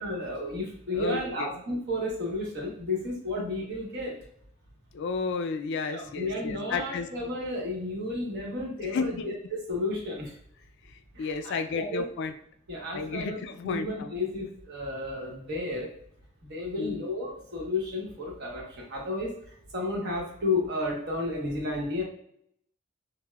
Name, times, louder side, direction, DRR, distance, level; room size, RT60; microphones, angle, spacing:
voice 1, 0.0-4.2 5.9-10.4 11.1-12.0 12.7-13.4 13.6-15.9 16.4-19.3 19.7-22.0, left 2 dB, 55° right, -1 dB, 1.0 m, -32 dB
voice 2, 0.9-1.5 4.9-7.1 8.8-9.3 11.2-12.3 12.9-14.1 16.8-17.0, left 4 dB, 55° left, 8 dB, 0.3 m, -32 dB
5.3 x 2.0 x 2.2 m, 0.68 s
head